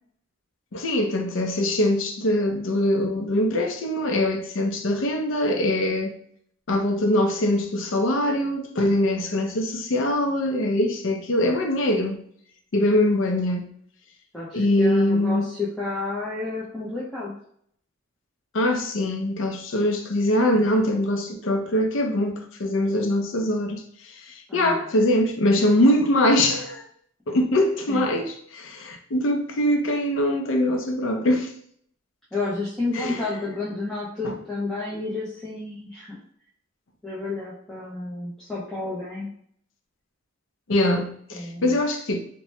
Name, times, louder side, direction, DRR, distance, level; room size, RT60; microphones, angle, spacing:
voice 1, 0.7-6.1 6.7-12.2 12.7-13.7 14.5-15.5 18.5-26.8 27.3-31.5 32.9-33.2 34.2-34.3 40.7-42.2, left 1 dB, 70° left, 0.5 m, -23 dB
voice 2, 14.3-17.3 24.5-24.9 27.9-28.0 32.3-36.1 37.0-39.3 41.3-41.7, left 3 dB, ahead, 0.5 m, -31 dB
2.8 x 2.2 x 3.1 m
head